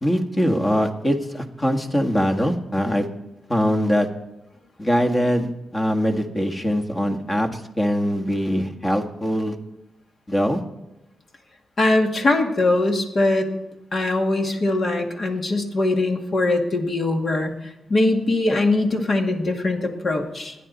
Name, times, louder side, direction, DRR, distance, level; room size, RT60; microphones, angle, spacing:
voice 1, 0.0-3.1 3.5-4.1 4.8-9.6 10.3-10.6, equal, 20° left, 3 dB, 1.8 m, -22 dB
voice 2, 11.8-13.5 13.9-17.5 17.9-20.6, left 2 dB, 45° left, 2 dB, 2.2 m, -21 dB
28.5 x 10.0 x 4.2 m, 0.94 s
cardioid pair, 110°, 0 cm